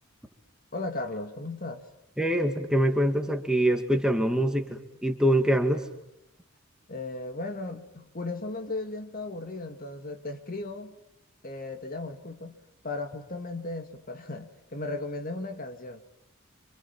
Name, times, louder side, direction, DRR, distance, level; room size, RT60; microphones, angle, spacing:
voice 1, 0.7-1.8 6.9-11.0 11.4-12.6 12.8-16.0, left 2 dB, 45° left, 2.0 m, -36 dB
voice 2, 2.2-5.9, equal, 5° right, 2.3 m, -24 dB
27.5 x 27.0 x 7.3 m
head